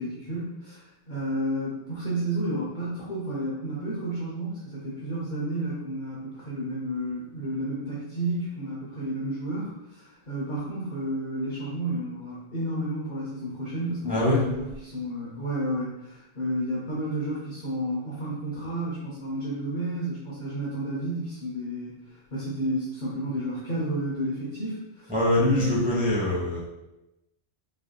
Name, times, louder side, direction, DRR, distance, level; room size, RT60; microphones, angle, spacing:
voice 1, 0.0-25.1 25.4-25.8, right 1 dB, 50° left, -7 dB, 0.9 m, -31 dB
voice 2, 14.0-14.4 25.1-26.6, left 1 dB, 10° right, -6 dB, 1.0 m, -23 dB
5.6 x 2.7 x 2.2 m, 0.95 s
omnidirectional pair, 1.1 m